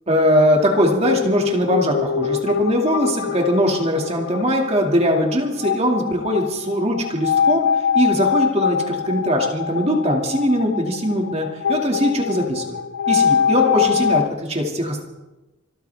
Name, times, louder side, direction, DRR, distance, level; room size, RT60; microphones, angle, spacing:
voice 1, 0.1-7.7 7.9-12.8 13.1-15.0, equal, 30° right, 1 dB, 2.3 m, -20 dB
sound 1, 1.0-14.3, left 7 dB, 65° left, 0.6 m, -23 dB
26.0 x 14.0 x 3.5 m, 1.1 s
head